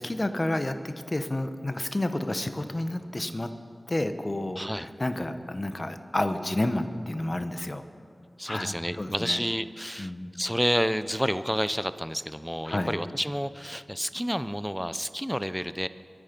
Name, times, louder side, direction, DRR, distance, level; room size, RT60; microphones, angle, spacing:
voice 1, 0.0-3.5 3.9-7.8 8.5-9.4 10.0-10.3 12.7-13.0, left 1 dB, 35° left, 9 dB, 1.0 m, -30 dB
voice 2, 4.6-4.9 8.4-15.9, equal, ahead, 13 dB, 0.5 m, -30 dB
24.0 x 9.9 x 5.2 m, 2.4 s
wide cardioid pair, 70°, 0 cm